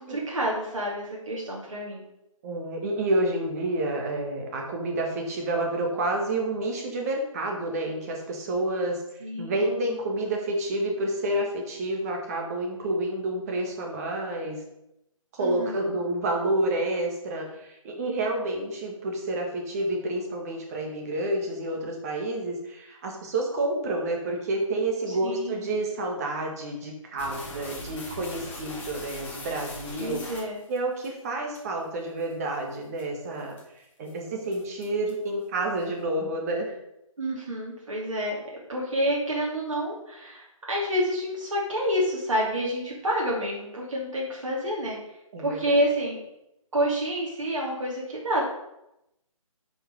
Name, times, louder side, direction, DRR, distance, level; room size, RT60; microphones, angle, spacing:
voice 1, 0.0-2.1 9.2-9.8 15.4-15.9 25.1-25.7 30.0-30.6 37.2-38.4 38.7-45.0 45.4-46.2 46.7-48.4, equal, 60° right, -4 dB, 2.8 m, -28 dB
voice 2, 2.4-9.0 9.4-14.6 15.3-30.2 30.7-36.7 45.3-45.7, right 1 dB, 25° right, 1 dB, 1.8 m, -29 dB
sound 1, 27.2-31.1 31.5-31.6 32.2-32.3 32.7-33.0 33.5-33.8 34.1-34.2 34.5-35.3, left 2 dB, 10° left, 1.2 m, -40 dB
8.5 x 5.5 x 5.5 m, 0.85 s
figure-of-eight pair, 145°, 18 cm